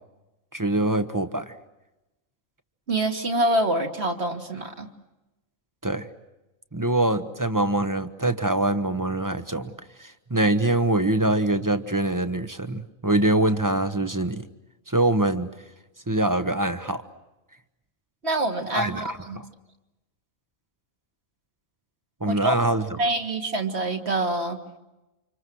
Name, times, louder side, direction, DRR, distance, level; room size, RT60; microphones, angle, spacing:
voice 1, 0.5-1.5 5.8-6.1 6.7-9.7 10.0-14.5 14.9-15.5 16.1-17.0 18.7-19.4 22.2-22.8, right 1 dB, 15° right, 10 dB, 0.9 m, -24 dB
voice 2, 2.9-4.9 18.2-19.4 22.3-22.6 23.0-24.6, right 1 dB, 50° right, 3 dB, 2.2 m, -26 dB
29.5 x 26.5 x 6.2 m, 1.0 s
omnidirectional pair, 1.4 m